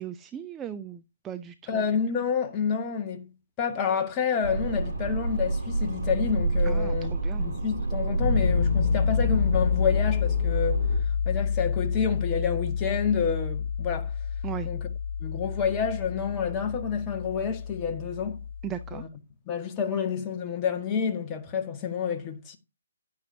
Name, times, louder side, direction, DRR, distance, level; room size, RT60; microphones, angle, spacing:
voice 1, 0.0-1.8 6.6-7.5 14.4-14.7 18.6-19.0, right 10 dB, 15° right, 0.6 m, -37 dB
voice 2, 1.7-3.3 3.6-7.1 7.4-10.8 11.2-14.1 14.6-14.8 15.2-18.4 18.9-19.1 19.5-22.6, left 7 dB, 20° left, 1.8 m, -28 dB
sound 1, 4.4-11.0, right 3 dB, 85° right, 4.5 m, -29 dB
Piano, 8.2-19.0, left 7 dB, 55° left, 0.8 m, -28 dB
10.5 x 9.9 x 2.7 m
figure-of-eight pair, 140°, 0 cm